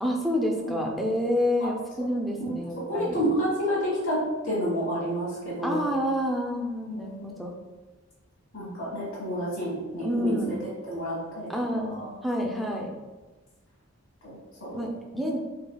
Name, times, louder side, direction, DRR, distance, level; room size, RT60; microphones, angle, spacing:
voice 1, 0.0-3.2 5.6-7.5 10.0-10.6 11.5-12.9 14.7-15.4, equal, ahead, -1 dB, 0.3 m, -28 dB
voice 2, 0.6-1.1 2.9-4.2 4.4-5.9 6.8-7.3 8.5-10.3 10.9-11.5 11.8-12.1 14.2-14.8, equal, 75° left, -7 dB, 1.2 m, -30 dB
3.5 x 3.3 x 2.2 m, 1.2 s
head